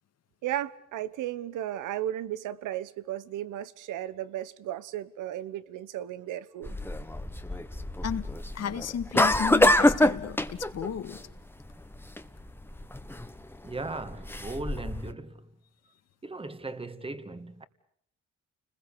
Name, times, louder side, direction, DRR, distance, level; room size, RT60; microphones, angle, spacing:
voice 1, 0.4-6.7, right 12 dB, 85° right, 1.2 m, -35 dB
sound 1, 6.6-15.1, left 1 dB, 5° left, 1.4 m, -26 dB
voice 2, 8.5-11.2, left 8 dB, 55° left, 1.8 m, -33 dB
voice 3, 13.6-15.5 16.2-17.7, right 2 dB, 20° right, 2.1 m, -38 dB
30.0 x 21.0 x 8.5 m
cardioid pair, 90°, 30 cm